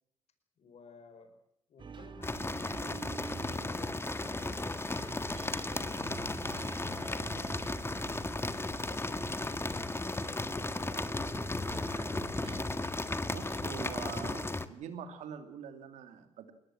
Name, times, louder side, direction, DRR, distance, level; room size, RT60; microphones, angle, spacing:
voice 1, 0.6-1.3 1.7-4.0 6.6-7.8 8.3-11.3, left 4 dB, 65° left, 7 dB, 5.0 m, -56 dB
sound 1, 1.8-12.9, right 4 dB, 45° right, 1.9 m, -47 dB
sound 2, 2.2-14.7, left 2 dB, 20° left, 1.7 m, -35 dB
voice 2, 13.3-16.5, right 8 dB, 80° right, 8 dB, 2.7 m, -44 dB
21.5 x 19.0 x 7.5 m, 0.78 s
supercardioid pair, 50°, 12 cm